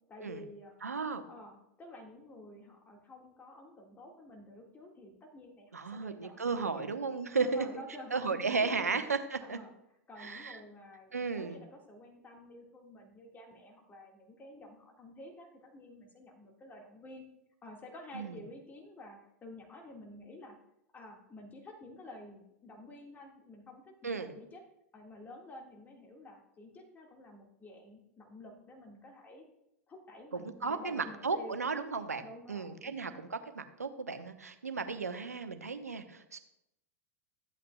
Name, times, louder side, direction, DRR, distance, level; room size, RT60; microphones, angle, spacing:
voice 1, 0.1-0.7 1.3-6.8 7.4-9.1 9.4-9.7 10.1-17.2 17.6-20.6 20.9-24.6 24.9-29.4 29.9-31.6 32.2-33.2, left 1 dB, 20° left, 1 dB, 1.7 m, -51 dB
voice 2, 0.8-1.2 5.7-7.7 8.1-9.6 10.2-10.6 11.1-11.6 18.1-18.4 24.0-24.3 30.3-32.2 32.5-36.4, right 4 dB, 90° right, 9 dB, 0.9 m, -34 dB
14.0 x 8.4 x 2.3 m, 0.83 s
hypercardioid pair, 95°, 8 cm